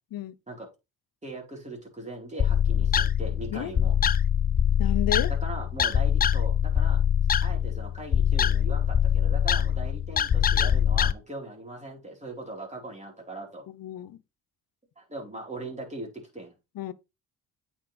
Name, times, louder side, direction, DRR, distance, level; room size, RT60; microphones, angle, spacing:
voice 1, 1.2-3.9 5.3-7.0 7.4-13.6 15.0-16.5, right 2 dB, 15° right, 4.1 m, -40 dB
sound 1, 2.4-11.1, left 8 dB, 20° left, 0.3 m, -23 dB
voice 2, 4.8-5.3 13.7-14.2 16.8-16.9, left 12 dB, 50° left, 0.8 m, -32 dB
8.6 x 5.2 x 3.4 m
hypercardioid pair, 50°, 45 cm